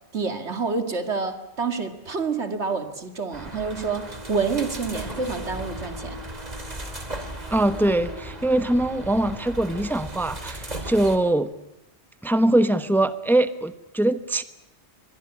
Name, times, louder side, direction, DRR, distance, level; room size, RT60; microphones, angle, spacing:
voice 1, 0.1-6.2, right 4 dB, 85° right, 7 dB, 2.6 m, -28 dB
sound 1, 3.3-11.2, right 1 dB, 40° right, 2.9 m, -36 dB
voice 2, 7.5-11.5 12.2-14.4, right 1 dB, ahead, 11 dB, 0.9 m, -22 dB
24.0 x 21.0 x 9.9 m, 0.85 s
omnidirectional pair, 1.1 m